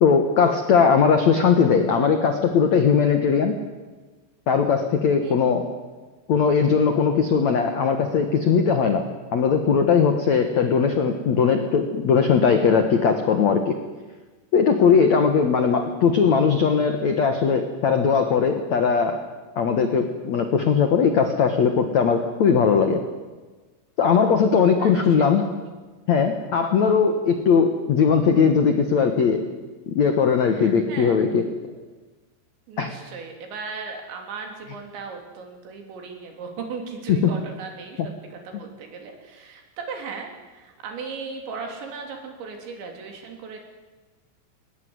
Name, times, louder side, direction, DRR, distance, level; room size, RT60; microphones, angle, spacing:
voice 1, 0.0-3.6 4.5-5.6 6.3-9.0 9.3-13.8 14.5-19.3 19.5-23.0 24.0-25.5 26.1-29.4 29.9-31.4 32.8-32.9 37.1-37.3, left 6 dB, 80° left, 6 dB, 1.6 m, -19 dB
voice 2, 5.2-5.8 24.8-25.5 29.3-29.5 30.5-31.2 32.7-43.6, right 5 dB, 65° right, 3 dB, 5.3 m, -37 dB
22.5 x 19.0 x 9.7 m, 1.3 s
omnidirectional pair, 5.8 m